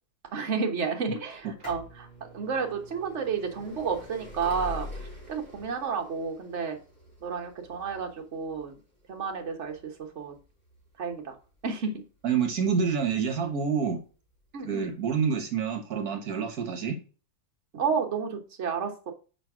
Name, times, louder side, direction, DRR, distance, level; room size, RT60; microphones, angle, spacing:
voice 1, 0.3-6.8 7.2-8.7 9.1-10.3 11.0-11.3 11.6-12.0 14.5-14.9 17.7-19.1, right 5 dB, 45° right, 3 dB, 1.3 m, -31 dB
sound 1, 1.3-12.9 13.8-13.9 14.8-14.9 15.1-15.2, left 1 dB, 20° left, 3.6 m, -45 dB
voice 2, 12.2-14.0 14.6-17.0, right 6 dB, 60° right, 4 dB, 1.7 m, -27 dB
5.1 x 4.0 x 5.9 m, 0.35 s
omnidirectional pair, 1.8 m